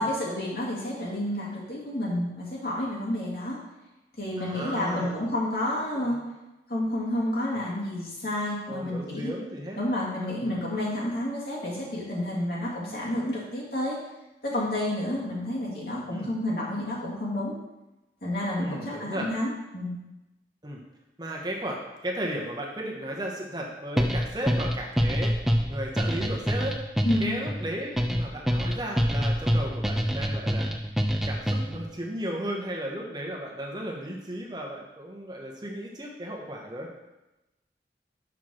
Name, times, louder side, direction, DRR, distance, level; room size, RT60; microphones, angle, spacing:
voice 1, 0.0-3.6 4.2-6.2 6.7-9.3 9.8-14.0 14.4-17.5 18.2-19.9 27.0-27.3, left 1 dB, 60° left, -5 dB, 2.4 m, -30 dB
voice 2, 4.4-5.1 5.9-6.2 7.5-7.6 8.7-9.8 10.4-10.6 16.1-16.3 18.6-19.3 20.6-20.8 21.2-25.4 25.7-26.8 27.2-30.7 31.1-36.9, right 1 dB, 25° right, -1 dB, 1.0 m, -35 dB
sound 1, 24.0-31.9, equal, ahead, 0.4 m, -26 dB
5.9 x 4.6 x 6.3 m, 1.0 s
head